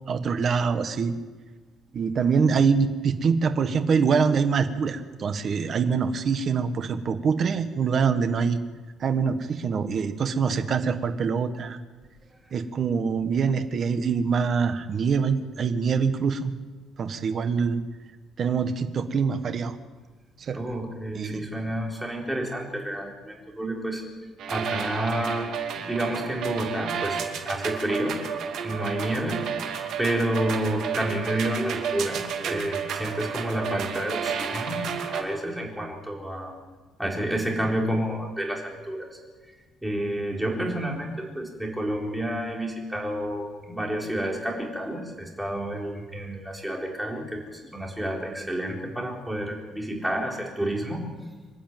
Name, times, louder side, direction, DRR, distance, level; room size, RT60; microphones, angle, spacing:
voice 1, 0.1-1.1 1.9-8.6 9.0-11.8 12.5-16.5 17.0-17.8 18.4-19.8 20.5-20.6 21.1-21.4, right 5 dB, 40° right, 8 dB, 1.4 m, -24 dB
voice 2, 20.5-24.0 24.5-28.3 28.6-29.5 30.0-36.6 37.0-39.2 39.8-51.0, right 1 dB, 5° right, -1 dB, 4.0 m, -30 dB
sound 1, 24.4-35.2, right 7 dB, 65° right, 2.7 m, -31 dB
26.0 x 11.5 x 9.2 m, 1.4 s
cardioid pair, 155°, 0 cm